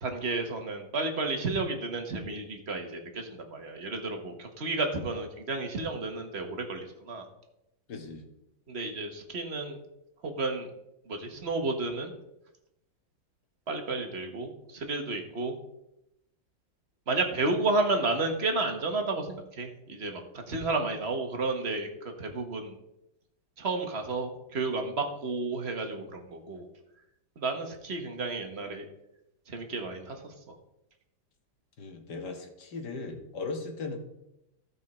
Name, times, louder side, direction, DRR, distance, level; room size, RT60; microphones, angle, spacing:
voice 1, 0.0-7.3 8.7-9.8 10.2-10.7 11.1-12.1 13.7-15.5 17.1-20.2 20.5-22.7 23.6-26.7 27.4-28.9 29.5-30.3, right 3 dB, 40° right, 4 dB, 1.3 m, -32 dB
voice 2, 7.9-8.3 20.5-20.9 31.8-34.0, left 3 dB, 60° left, 3 dB, 1.9 m, -38 dB
15.5 x 5.4 x 4.3 m, 0.87 s
omnidirectional pair, 2.1 m